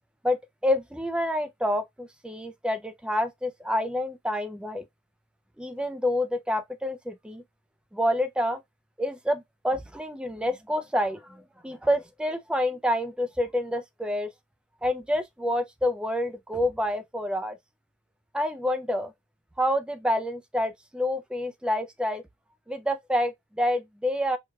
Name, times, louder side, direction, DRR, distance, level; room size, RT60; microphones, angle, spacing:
voice 1, 0.6-4.8 5.6-7.4 7.9-8.6 9.0-14.3 14.8-17.6 18.3-19.1 19.6-22.2 22.7-24.4, left 1 dB, 5° right, 0.3 m, -28 dB
4.7 x 2.3 x 2.2 m
head